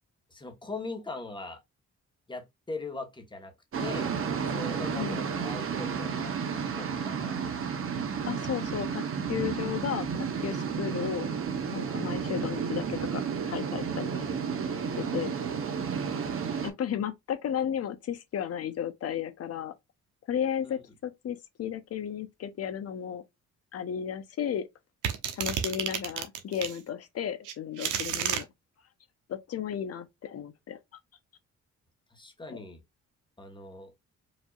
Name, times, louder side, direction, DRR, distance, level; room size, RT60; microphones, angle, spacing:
voice 1, 0.3-1.6 2.3-3.5 3.8-4.1 4.5-7.4 14.1-15.2 20.6-20.8 32.1-32.8 33.4-33.9, left 3 dB, 15° left, 1.3 m, -41 dB
sound 1, 3.7-16.7, right 6 dB, 45° right, 1.0 m, -32 dB
voice 2, 8.2-11.3 11.7-13.2 13.5-14.2 14.9-15.3 16.6-19.7 20.3-23.2 23.7-24.7 25.3-28.5 29.3-30.8 32.5-32.6, left 9 dB, 55° left, 0.8 m, -34 dB
sound 2, 25.0-26.8 27.4-28.4, right 9 dB, 85° right, 0.9 m, -31 dB
5.0 x 2.8 x 2.4 m
cardioid pair, 90°, 30 cm